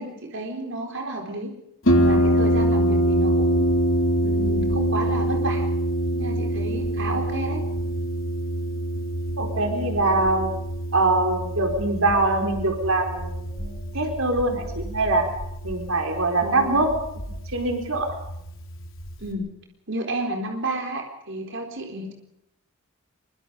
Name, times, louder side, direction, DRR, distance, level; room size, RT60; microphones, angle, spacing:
voice 1, 0.0-1.5 2.0-3.6 4.2-5.7 6.2-7.6 16.4-16.7 19.2-19.4 19.9-22.1, right 1 dB, 55° right, 2 dB, 4.1 m, -31 dB
Harp, 1.9-19.3, right 1 dB, 60° left, 4.2 m, -25 dB
voice 2, 9.4-10.5 10.9-15.3 15.6-16.9 17.1-18.2, right 2 dB, 70° right, 4 dB, 4.2 m, -23 dB
24.5 x 23.5 x 5.2 m, 0.79 s
head